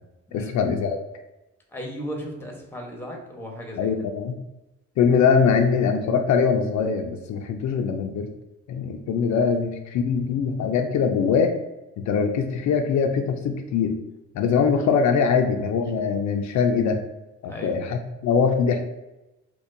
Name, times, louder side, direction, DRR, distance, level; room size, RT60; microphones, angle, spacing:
voice 1, 0.3-1.0 3.8-4.4 5.0-8.3 8.7-11.5 12.0-14.0 14.3-17.0 17.4-18.9, left 6 dB, 70° left, 5 dB, 0.4 m, -22 dB
voice 2, 1.7-3.9 15.3-15.4 17.5-17.7, equal, 10° left, 1 dB, 0.9 m, -36 dB
4.2 x 2.3 x 2.6 m, 1.0 s
cardioid pair, 90°, 30 cm